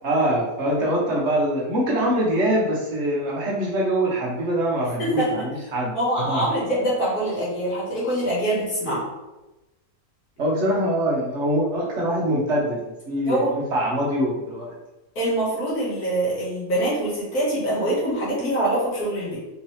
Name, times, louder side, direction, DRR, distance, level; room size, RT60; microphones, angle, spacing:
voice 1, 0.0-6.5 10.4-14.7, right 1 dB, 55° right, -3 dB, 1.0 m, -24 dB
voice 2, 5.9-9.0 13.3-13.5 15.2-19.4, right 1 dB, 85° left, -7 dB, 2.0 m, -24 dB
3.8 x 2.9 x 3.1 m, 1.0 s
omnidirectional pair, 1.6 m